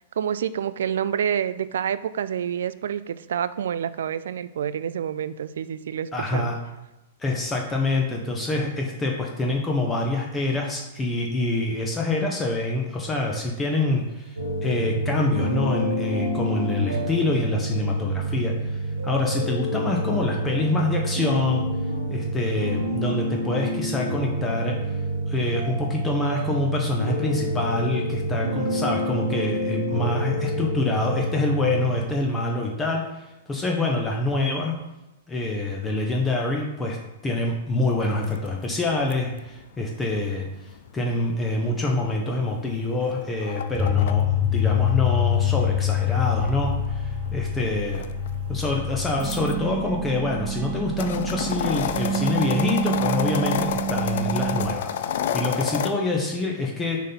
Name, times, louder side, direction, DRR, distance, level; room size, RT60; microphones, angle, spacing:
voice 1, 0.0-6.5, right 9 dB, 60° right, 15 dB, 0.3 m, -28 dB
voice 2, 6.1-6.5 7.2-21.6 22.1-25.0 25.2-34.7 35.3-37.0 37.2-40.5 40.9-48.0 48.5-57.0, left 2 dB, 15° left, 0 dB, 0.8 m, -26 dB
sound 1, 14.4-32.0, right 1 dB, 75° right, 1.0 m, -28 dB
sound 2, 38.2-44.1 45.4-49.5 50.1-55.9, left 9 dB, 55° left, 0.4 m, -31 dB
sound 3, 43.7-54.7, left 3 dB, 20° right, 0.9 m, -26 dB
6.2 x 4.0 x 4.2 m, 0.99 s
figure-of-eight pair, 105°, 0 cm